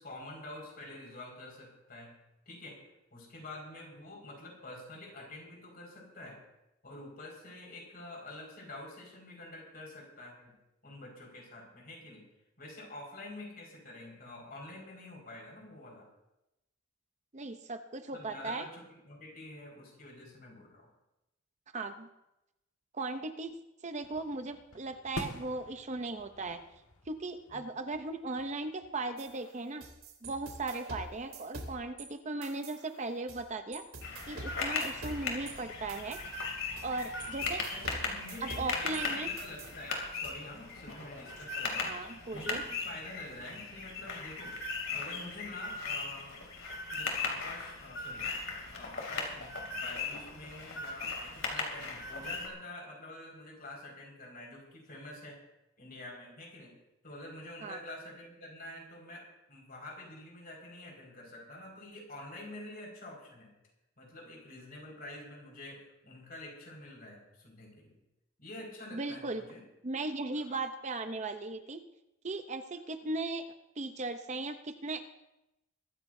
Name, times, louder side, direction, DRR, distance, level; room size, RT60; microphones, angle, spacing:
voice 1, 0.0-2.2 2.5-2.8 3.1-6.4 6.8-10.6 10.8-12.2 12.6-16.1 18.1-20.9 27.5-27.6 37.7-44.6 44.9-46.5 46.9-48.3 48.7-55.4 55.8-56.8 57.0-63.5 64.0-67.9 68.4-69.6 70.3-70.6, left 1 dB, 45° left, 0 dB, 5.2 m, -47 dB
voice 2, 17.3-18.7 21.7-22.1 22.9-23.5 23.8-26.6 27.1-29.8 30.2-33.8 34.3-36.2 36.8-37.6 38.4-39.3 41.8-42.6 57.6-57.8 68.9-69.4 69.8-71.8 72.2-73.4 73.8-75.0, right 3 dB, 35° right, 7 dB, 0.7 m, -37 dB
sound 1, 24.0-29.3, left 1 dB, 85° left, 1.5 m, -48 dB
sound 2, 29.2-32.1 32.4-33.4 33.7-39.0 39.4-40.3, right 2 dB, 85° right, 3.4 m, -46 dB
sound 3, 34.0-52.5, left 4 dB, 65° left, 2.9 m, -38 dB
23.5 x 13.5 x 2.7 m, 0.92 s
head